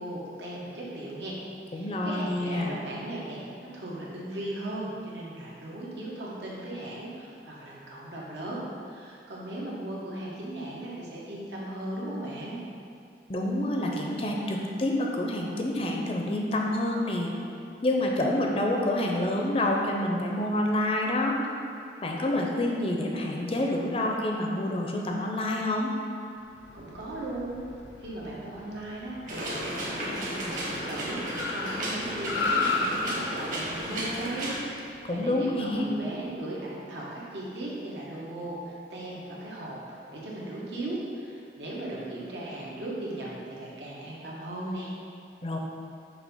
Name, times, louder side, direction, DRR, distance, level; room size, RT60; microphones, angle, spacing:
voice 1, 0.0-1.4 1.6-3.4 3.7-12.6 26.7-27.6 28.0-39.8 40.1-44.9, right 1 dB, 80° right, -5 dB, 1.4 m, -37 dB
voice 2, 1.7-2.8 13.3-17.3 17.8-21.4 22.0-25.9 35.0-35.9 45.4-45.6, left 1 dB, 35° left, 0 dB, 0.6 m, -27 dB
Car, 26.5-36.0, left 3 dB, 85° left, 0.6 m, -35 dB
sound 1, 29.3-34.6, right 1 dB, 45° right, 1.2 m, -33 dB
6.6 x 2.9 x 5.5 m, 2.6 s
head